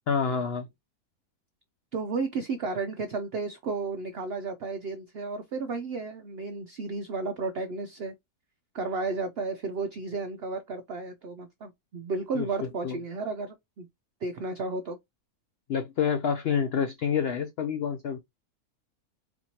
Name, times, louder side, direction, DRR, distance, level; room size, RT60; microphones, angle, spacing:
voice 1, 0.1-0.7 12.3-12.5 12.8-13.0 15.7-18.2, left 7 dB, 80° left, 0.5 m, -27 dB
voice 2, 1.9-8.1 8.7-13.9 14.2-15.0, right 3 dB, 75° right, 0.5 m, -33 dB
4.3 x 2.9 x 2.8 m
omnidirectional pair, 1.6 m